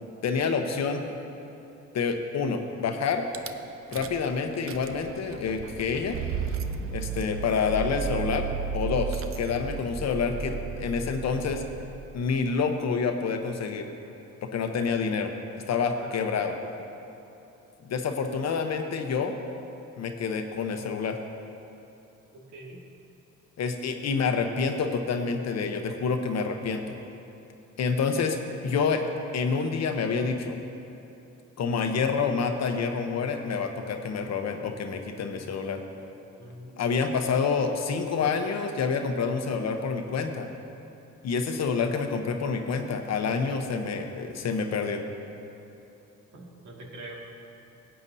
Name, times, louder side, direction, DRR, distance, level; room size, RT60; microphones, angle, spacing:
voice 1, 0.2-1.0 1.9-3.2 3.9-6.2 6.9-8.5 8.7-11.6 12.1-13.9 14.4-15.3 15.7-16.6 17.8-19.3 20.0-21.2 23.6-27.0 27.8-28.4 28.6-29.0 29.3-30.6 31.6-35.8 36.8-40.5 41.2-45.0, left 5 dB, 60° left, 5 dB, 0.9 m, -28 dB
Rattle / Car / Engine starting, 3.3-3.5 3.9-4.3 4.5-12.3, right 6 dB, 45° right, 0.6 m, -34 dB
voice 2, 22.3-22.8 36.4-37.1 46.3-47.4, right 1 dB, 70° right, -2 dB, 2.1 m, -44 dB
16.5 x 8.8 x 2.7 m, 3.0 s
cardioid pair, 90°, 30 cm